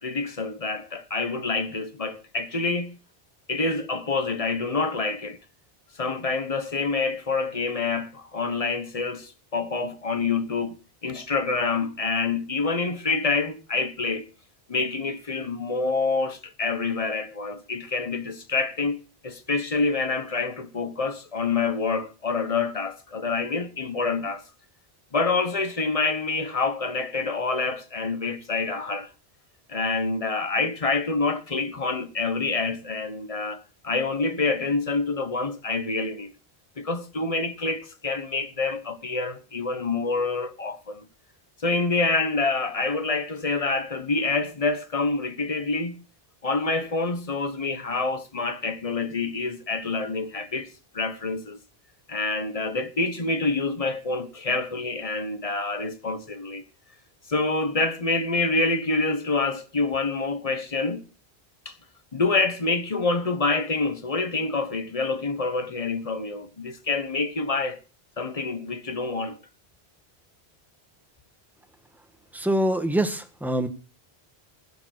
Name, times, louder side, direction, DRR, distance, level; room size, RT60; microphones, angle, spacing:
voice 1, 0.0-3.0 3.5-5.4 5.9-10.8 11.0-14.3 14.7-24.4 25.1-29.1 29.7-36.3 36.8-41.1 41.6-46.0 46.4-50.7 50.9-51.6 52.1-56.6 57.3-61.1 61.6-61.8 62.1-67.8 68.2-69.4, left 3 dB, 35° left, 1.2 m, -27 dB
voice 2, 72.3-73.7, right 1 dB, ahead, 1.3 m, -24 dB
15.5 x 6.9 x 6.5 m
omnidirectional pair, 1.1 m